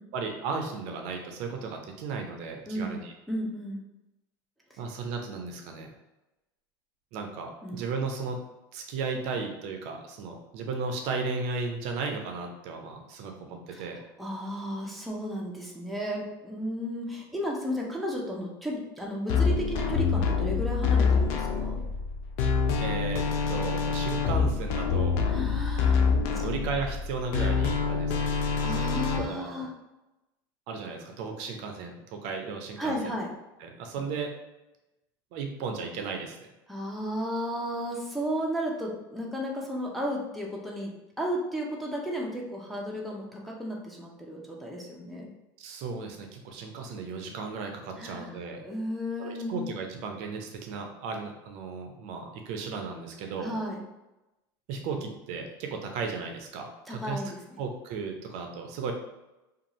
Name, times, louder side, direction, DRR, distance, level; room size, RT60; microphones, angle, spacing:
voice 1, 0.1-3.1 4.8-5.9 7.1-8.4 8.7-14.0 22.8-25.2 26.3-28.3 28.7-29.6 30.7-33.1 33.6-34.3 35.3-36.5 45.6-48.6 49.2-53.5 54.7-57.2 57.6-58.9, right 4 dB, 60° right, 3 dB, 0.5 m, -35 dB
voice 2, 2.7-3.0 3.3-3.9 7.6-7.8 13.7-13.9 14.2-21.8 25.3-26.0 26.3-26.4 28.6-29.7 32.8-33.3 36.7-45.3 48.0-48.3 48.6-49.7 53.4-53.8 56.9-57.6, equal, ahead, -3 dB, 0.6 m, -33 dB
sound 1, 19.3-29.2, left 5 dB, 60° left, 0.4 m, -26 dB
2.6 x 2.4 x 2.9 m, 0.98 s
supercardioid pair, 100°, 13 cm